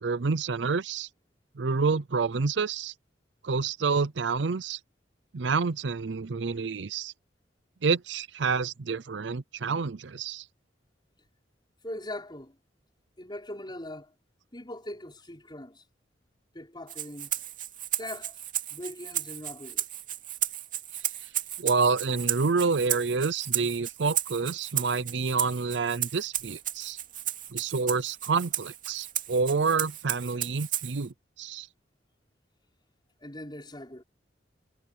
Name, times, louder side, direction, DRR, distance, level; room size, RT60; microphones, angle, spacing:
voice 1, 0.0-1.1 1.6-2.9 3.4-4.8 5.3-7.1 7.8-10.4 21.6-27.0 27.5-31.7, right 4 dB, 80° right, 0.6 m, -28 dB
voice 2, 11.8-12.6 13.2-14.1 14.5-15.8 16.5-17.3 18.0-18.4 18.7-19.8 33.2-34.0, left 1 dB, 25° left, 5.6 m, -40 dB
Rattle (instrument), 16.9-31.1, right 11 dB, 45° right, 2.6 m, -34 dB
head